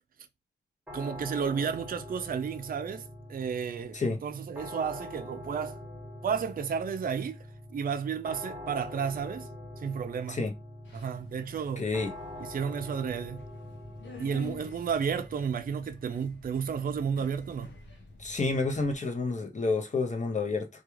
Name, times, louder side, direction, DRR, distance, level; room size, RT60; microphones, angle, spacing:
sound 1, 0.9-19.8, left 1 dB, 5° right, 0.9 m, -45 dB
voice 1, 0.9-5.8 6.2-7.4 7.7-9.5 9.8-10.4 10.9-11.9 12.5-13.5 14.2-17.7, right 6 dB, 50° right, 0.4 m, -32 dB
Subway metro underground, 10.8-19.0, left 4 dB, 85° left, 0.7 m, -50 dB
voice 2, 11.8-12.1 18.2-20.7, left 3 dB, 40° left, 0.7 m, -29 dB
2.3 x 2.3 x 3.0 m
cardioid pair, 60°, 18 cm